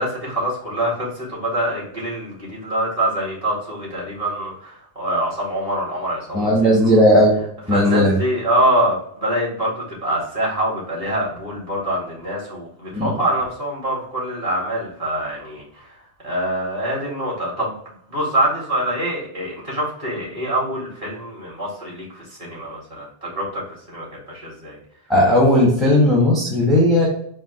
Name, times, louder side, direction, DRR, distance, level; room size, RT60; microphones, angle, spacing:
voice 1, 0.0-7.0 7.7-15.9 16.2-17.8 18.1-23.6 23.9-24.8, right 1 dB, 30° right, -6 dB, 2.1 m, -25 dB
voice 2, 6.3-7.4 7.7-8.2 12.9-13.1 25.1-27.1, left 1 dB, ahead, -5 dB, 1.1 m, -15 dB
4.5 x 2.8 x 4.0 m, 0.66 s
omnidirectional pair, 1.2 m